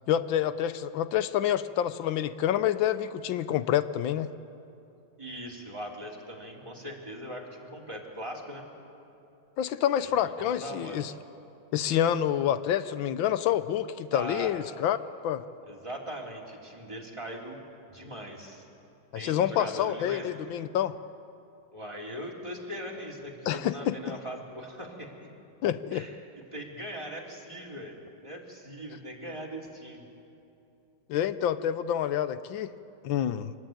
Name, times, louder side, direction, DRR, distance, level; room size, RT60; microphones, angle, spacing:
voice 1, 0.1-4.3 9.6-11.1 11.7-15.4 19.1-21.0 23.5-23.9 25.6-26.1 31.1-32.7 33.0-33.5, left 10 dB, 85° left, 13 dB, 1.5 m, -28 dB
voice 2, 5.2-8.6 10.0-11.0 14.1-14.5 15.7-17.6 17.9-18.7 19.1-20.3 21.7-25.1 25.9-30.1, equal, 15° right, -2 dB, 3.1 m, -40 dB
25.0 x 20.5 x 9.1 m, 2.7 s
omnidirectional pair, 2.1 m